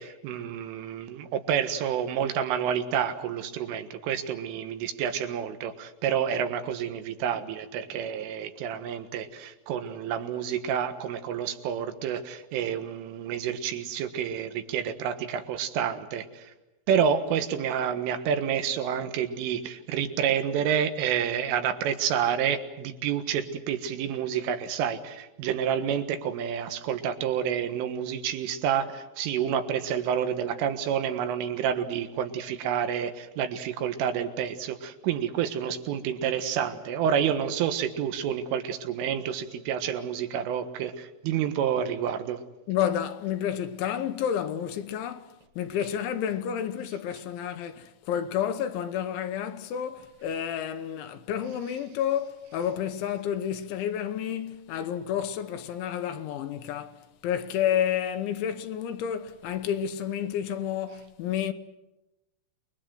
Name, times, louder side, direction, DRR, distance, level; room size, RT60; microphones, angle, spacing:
voice 1, 0.0-16.5 16.9-42.4, right 8 dB, 80° right, 4.1 m, -29 dB
voice 2, 42.7-61.5, left 9 dB, 75° left, 3.3 m, -30 dB
29.0 x 22.0 x 7.8 m
omnidirectional pair, 5.7 m